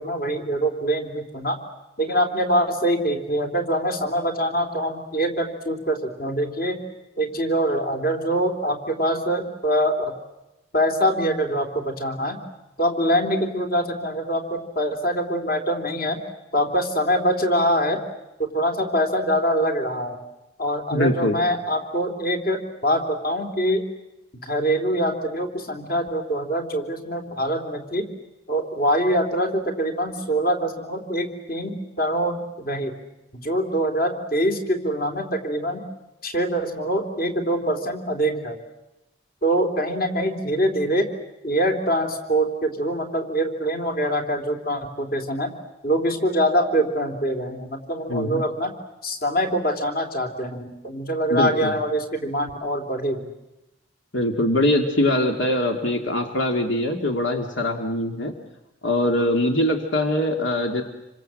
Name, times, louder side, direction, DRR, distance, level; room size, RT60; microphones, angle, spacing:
voice 1, 0.0-1.6 2.0-6.8 7.2-10.0 10.7-12.4 12.8-16.2 16.5-18.0 18.4-20.2 20.6-23.8 24.5-28.1 28.5-32.9 33.3-35.8 36.2-38.6 39.4-41.1 41.4-45.5 45.8-48.7 49.0-53.2, equal, 50° left, 5 dB, 3.4 m, -24 dB
voice 2, 20.9-21.4 48.1-48.4 51.3-51.7 54.1-58.3 58.8-60.8, left 1 dB, 75° left, 4 dB, 2.5 m, -22 dB
28.0 x 25.5 x 7.7 m, 0.97 s
head